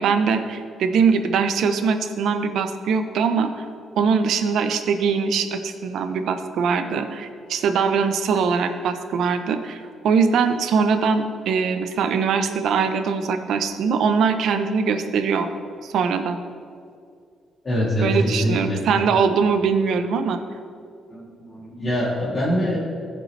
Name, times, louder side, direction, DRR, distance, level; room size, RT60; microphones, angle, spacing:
voice 1, 0.0-3.6 4.0-15.5 15.8-16.4 18.0-20.4, right 5 dB, 75° right, 9 dB, 0.6 m, -22 dB
voice 2, 17.6-18.8 21.1-22.8, equal, 35° left, -9 dB, 2.3 m, -24 dB
14.5 x 5.3 x 3.2 m, 2.3 s
cardioid pair, 90°, 0 cm